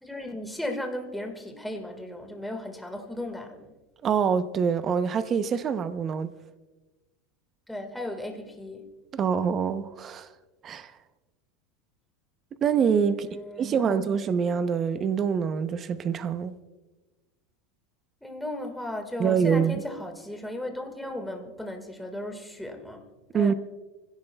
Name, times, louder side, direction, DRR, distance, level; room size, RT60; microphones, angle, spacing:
voice 1, 0.0-3.7 7.7-8.9 13.1-14.0 18.2-23.1 23.3-23.5, left 1 dB, ahead, 1.7 m, -36 dB
voice 2, 4.0-6.3 9.1-10.3 10.6-10.9 12.6-13.3 13.6-16.5 19.2-19.8 23.3-23.5, right 7 dB, 25° right, 0.7 m, -25 dB
25.5 x 16.5 x 2.3 m
supercardioid pair, 155°, 0 cm